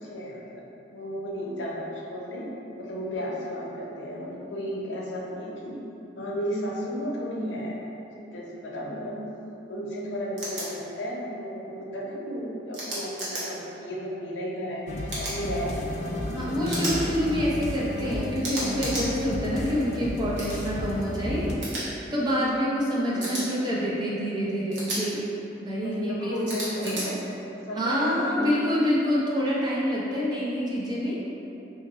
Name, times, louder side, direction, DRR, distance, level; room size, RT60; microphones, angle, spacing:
voice 1, 0.0-0.6 0.9-2.5 2.8-5.8 6.2-7.7 8.2-9.2 9.7-16.6 23.1-23.4 25.8-28.5, equal, 85° left, -4 dB, 0.6 m, -34 dB
sound 1, 10.4-10.6 12.7-13.4 15.1-15.4 16.7-17.0 18.4-19.1 20.4-20.6 21.6-21.8 23.2-23.4 24.7-25.0 26.5-27.0, right 1 dB, 85° right, 1.0 m, -32 dB
sound 2, 14.9-21.6, left 2 dB, 40° left, 0.3 m, -33 dB
voice 2, 16.3-25.3 25.6-26.3 26.8-27.1 27.8-31.1, equal, 25° right, -6 dB, 0.6 m, -27 dB
2.8 x 2.7 x 3.8 m, 2.9 s
head